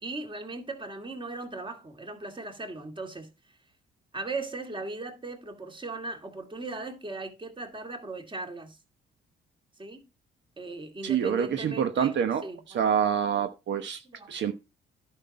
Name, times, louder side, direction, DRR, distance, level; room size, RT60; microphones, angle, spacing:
voice 1, 0.0-3.3 4.1-8.8 9.8-10.1 10.6-13.0 14.0-14.4, right 2 dB, 25° right, 2.3 m, -38 dB
voice 2, 11.0-12.4 12.7-14.0 14.3-14.5, right 8 dB, 65° right, 1.2 m, -26 dB
11.0 x 6.0 x 4.3 m
cardioid pair, 90°, 20 cm